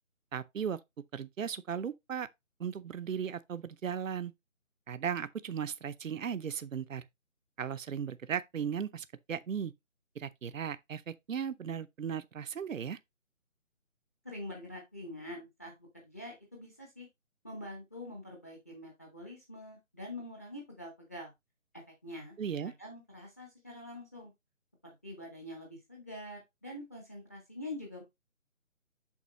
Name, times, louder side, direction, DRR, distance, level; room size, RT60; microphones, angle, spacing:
voice 1, 0.3-0.8 1.1-2.3 2.6-4.3 4.9-7.0 7.6-9.7 10.2-13.0 22.4-22.7, right 7 dB, 70° right, 0.7 m, -36 dB
voice 2, 14.2-15.7 16.0-17.1 17.4-21.3 22.0-24.3 25.0-28.0, left 1 dB, 10° left, 0.8 m, -45 dB
7.2 x 5.5 x 3.0 m
figure-of-eight pair, 165°, 41 cm